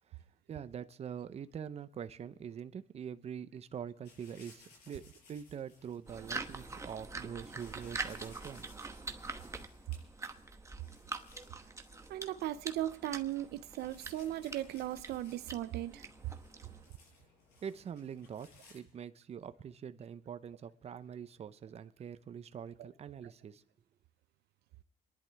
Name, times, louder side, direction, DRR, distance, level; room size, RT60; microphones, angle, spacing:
voice 1, 0.5-8.7 16.6-16.9 17.6-23.6, right 8 dB, 40° right, 0.7 m, -44 dB
sound 1, 4.0-18.8, left 4 dB, 75° left, 5.8 m, -62 dB
sound 2, 6.1-16.9, right 3 dB, 15° right, 1.0 m, -45 dB
voice 2, 12.1-16.1, right 13 dB, 75° right, 0.6 m, -37 dB
28.0 x 11.0 x 3.5 m
cardioid pair, 110°, 17 cm